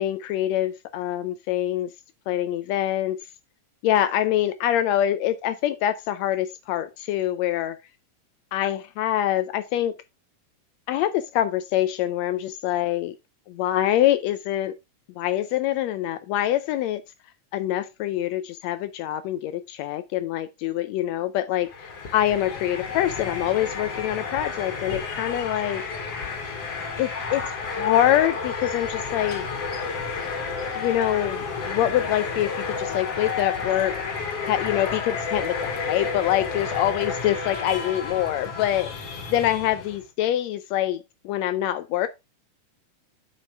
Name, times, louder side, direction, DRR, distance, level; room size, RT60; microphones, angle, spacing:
voice 1, 0.0-1.9 2.3-3.3 3.8-7.8 8.5-9.9 10.9-13.1 13.6-14.7 15.2-17.0 17.5-25.8 27.0-29.5 30.8-34.0 34.5-38.9 39.3-42.1, left 12 dB, 85° left, 1.5 m, -25 dB
sound 1, 21.6-40.0, left 5 dB, 50° left, 2.4 m, -31 dB
9.0 x 5.4 x 3.4 m
omnidirectional pair, 3.8 m